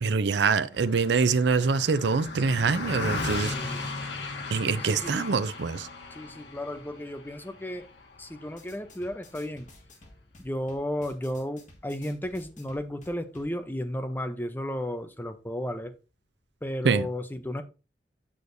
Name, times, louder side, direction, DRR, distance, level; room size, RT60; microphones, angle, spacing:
voice 1, 0.0-3.9 4.5-5.9 16.8-17.1, right 5 dB, 80° right, 0.5 m, -25 dB
Car passing by, 0.7-10.3, left 3 dB, 85° left, 1.4 m, -37 dB
voice 2, 3.5-3.9 4.9-5.3 6.1-7.9 8.2-9.7 10.4-15.9 16.6-17.6, left 1 dB, 10° left, 0.6 m, -33 dB
sound 1, 8.5-13.5, left 2 dB, 45° left, 1.6 m, -54 dB
8.5 x 6.3 x 2.6 m
head